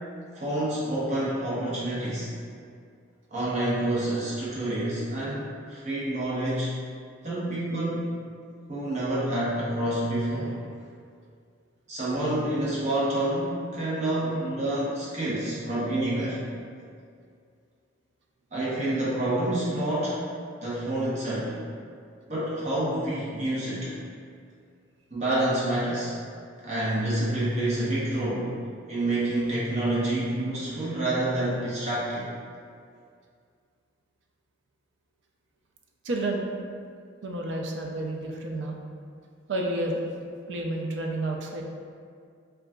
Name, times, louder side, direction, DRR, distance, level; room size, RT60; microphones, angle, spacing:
voice 1, 0.3-2.3 3.3-6.7 7.2-8.2 8.7-10.6 11.9-16.4 18.5-20.2 20.6-21.6 22.3-23.9 25.1-26.1 26.6-28.5 28.9-32.3, right 1 dB, 35° right, -8 dB, 0.7 m, -28 dB
voice 2, 36.0-36.5 37.2-38.8 39.5-40.0 40.5-41.6, right 1 dB, 65° right, 0 dB, 0.4 m, -30 dB
3.7 x 2.3 x 2.2 m, 2.2 s
head